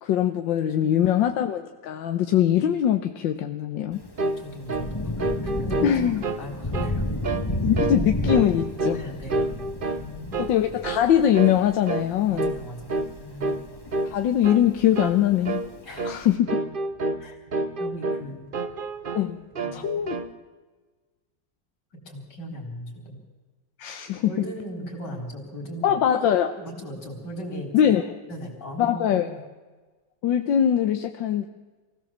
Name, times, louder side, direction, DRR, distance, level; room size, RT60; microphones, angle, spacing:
voice 1, 0.0-4.0 5.8-6.2 7.6-9.0 10.4-12.5 14.1-15.7 16.0-16.6 19.1-19.4 19.7-20.2 23.8-24.3 25.8-26.6 27.7-28.0 28.8-29.4 30.2-31.5, left 10 dB, 85° left, 7 dB, 1.6 m, -22 dB
voice 2, 0.8-1.2 4.4-5.1 5.4-6.0 6.4-7.0 8.9-9.4 10.0-10.5 12.3-13.8 15.8-16.1 17.2-17.4 17.8-18.4 19.6-20.0 21.9-23.2 24.2-26.0 26.6-27.7 28.3-29.4, equal, 65° left, 2 dB, 4.6 m, -38 dB
Thunder / Rain, 3.9-16.3, left 1 dB, 15° left, 1.4 m, -33 dB
sound 1, 4.2-4.4 4.7-4.9 5.2-6.4 6.7-7.0 7.2-7.5 7.8-8.0 8.3-9.0 9.3-10.1 10.3-10.6 10.8-11.1 11.3-11.6 11.9-12.1 12.4-12.6 12.9-13.1 13.4-13.6 13.9-14.2 14.4-14.6 15.0-15.2 15.5-15.7 16.0-16.2 16.5-17.2 17.5-18.3 18.5-19.3 19.6-20.3, right 2 dB, 40° right, 0.9 m, -28 dB
23.5 x 16.5 x 7.3 m, 1.3 s
omnidirectional pair, 2.0 m